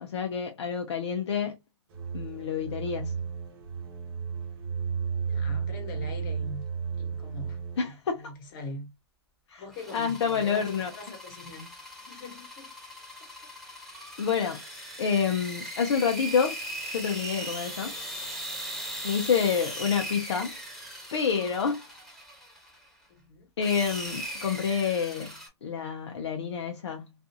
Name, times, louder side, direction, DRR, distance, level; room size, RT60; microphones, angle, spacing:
voice 1, 0.0-1.6 2.1-3.2 7.8-8.3 9.5-9.6 9.9-10.9 14.2-14.6 15.0-16.6 16.9-18.0 19.0-20.6 21.1-21.9 23.6-25.3 25.6-27.1, left 6 dB, 70° left, 0.6 m, -28 dB
sound 1, 1.9-7.9, right 6 dB, 55° right, 0.9 m, -33 dB
voice 2, 5.2-6.6 7.0-7.9 8.2-8.9 9.6-11.6 12.0-12.7 13.2-13.3 23.1-23.5, left 2 dB, 50° left, 1.2 m, -42 dB
sound 2, 9.7-22.9 23.6-25.5, equal, ahead, 1.1 m, -39 dB
2.5 x 2.4 x 2.7 m
hypercardioid pair, 130°, 14 cm